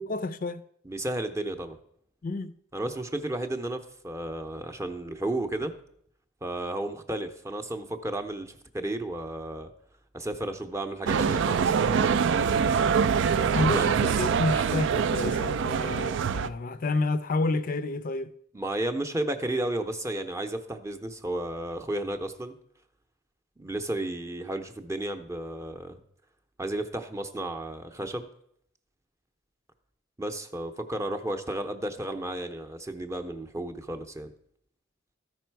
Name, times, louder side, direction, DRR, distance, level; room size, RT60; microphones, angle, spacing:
voice 1, 0.1-0.6 2.2-2.5 13.3-18.3, left 2 dB, 45° left, 0.5 m, -29 dB
voice 2, 0.8-1.8 2.7-5.8 6.4-9.7 10.1-11.9 13.6-13.9 18.5-22.5 23.6-26.0 26.6-28.3 30.2-34.3, right 1 dB, 15° right, 0.7 m, -33 dB
sound 1, 11.1-16.5, right 6 dB, 65° right, 0.4 m, -24 dB
14.0 x 5.4 x 4.6 m
head